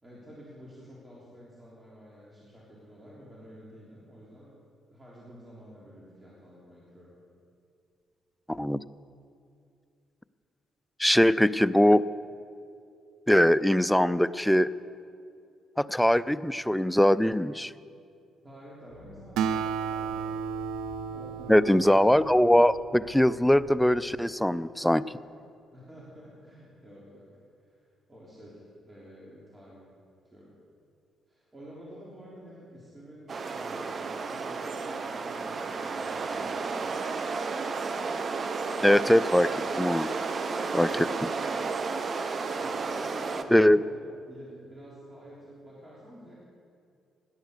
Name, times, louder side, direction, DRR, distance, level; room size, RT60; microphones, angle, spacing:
voice 1, 0.0-4.6 4.9-7.1 18.4-20.3 21.1-21.8 25.7-27.3 27.6-29.9 30.2-30.5 31.3-36.9 40.7-40.9 42.6-46.5, equal, 20° right, -6 dB, 3.5 m, -50 dB
voice 2, 8.5-8.8 11.0-12.0 13.3-14.7 15.8-17.7 21.5-25.1 38.8-40.1 40.7-41.3 43.5-43.8, left 1 dB, 5° left, 16 dB, 0.4 m, -22 dB
sound 1, 18.9-24.0, equal, 60° right, 2.0 m, -52 dB
Acoustic guitar, 19.4-23.1, right 7 dB, 90° right, 0.6 m, -33 dB
sound 2, 33.3-43.4, right 4 dB, 45° right, 1.0 m, -32 dB
17.5 x 11.0 x 6.7 m, 2.5 s
cardioid pair, 90°, 0 cm